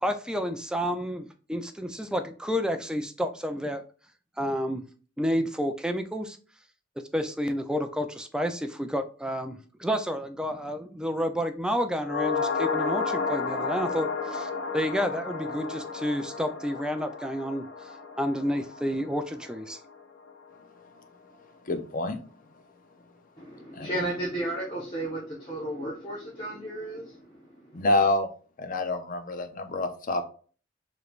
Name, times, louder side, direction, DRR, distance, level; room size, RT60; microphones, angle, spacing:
voice 1, 0.0-3.8 4.4-4.8 5.2-6.4 7.1-17.6 18.2-19.8, equal, 5° right, 7 dB, 0.4 m, -30 dB
sound 1, 12.0-20.5 20.8-20.9, left 5 dB, 70° left, 0.9 m, -32 dB
voice 2, 21.7-22.2 23.7-23.9 27.7-28.3 28.6-30.3, left 2 dB, 45° left, 7 dB, 0.6 m, -27 dB
voice 3, 23.4-27.8, right 1 dB, 25° left, -7 dB, 1.2 m, -34 dB
5.0 x 3.1 x 2.4 m, 0.40 s
head